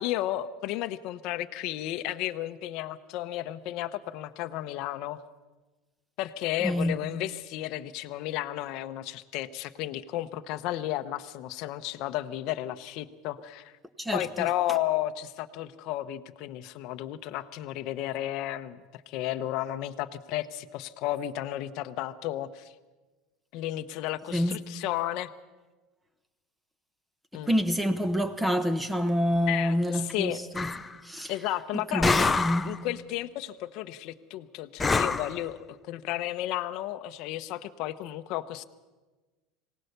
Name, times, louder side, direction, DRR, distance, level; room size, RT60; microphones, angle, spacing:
voice 1, 0.0-5.2 6.2-13.7 14.1-22.7 23.5-25.3 27.3-27.5 29.5-30.4 31.3-32.3 32.6-38.6, left 14 dB, 50° left, 0.9 m, -33 dB
voice 2, 6.6-7.0 14.0-14.5 24.3-24.6 27.4-30.7 31.0-31.3 31.9-32.7, equal, 5° right, 1.1 m, -27 dB
sound 1, 30.5-30.9 32.0-32.8 34.8-35.4, left 4 dB, 10° left, 0.6 m, -26 dB
24.0 x 18.0 x 6.7 m
cardioid pair, 165°, 0 cm